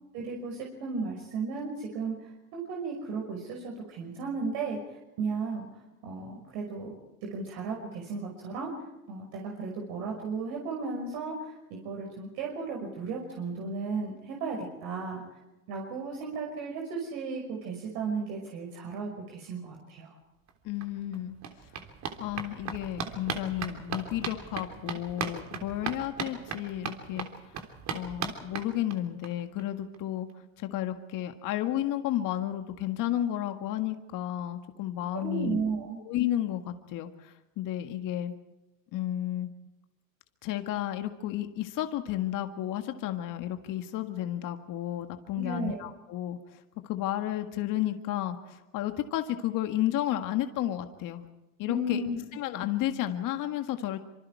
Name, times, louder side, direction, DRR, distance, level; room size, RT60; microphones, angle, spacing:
voice 1, 0.1-5.7 6.0-6.9 7.3-8.7 9.1-15.2 15.7-20.1 35.1-36.0 45.4-45.8 51.7-52.2, right 4 dB, 60° right, 0 dB, 5.6 m, -35 dB
sound 1, 20.5-20.6 20.8-29.3 29.6-29.7 29.9-30.0 30.3-30.4, right 6 dB, 40° right, 3.5 m, -38 dB
voice 2, 20.6-21.4 22.2-27.5 27.9-30.3 30.6-35.6 36.0-38.3 38.9-39.5 40.4-51.2 51.6-52.0 52.3-54.0, left 12 dB, 45° left, 6 dB, 1.8 m, -32 dB
26.5 x 25.0 x 4.7 m, 1.0 s
supercardioid pair, 110°, 43 cm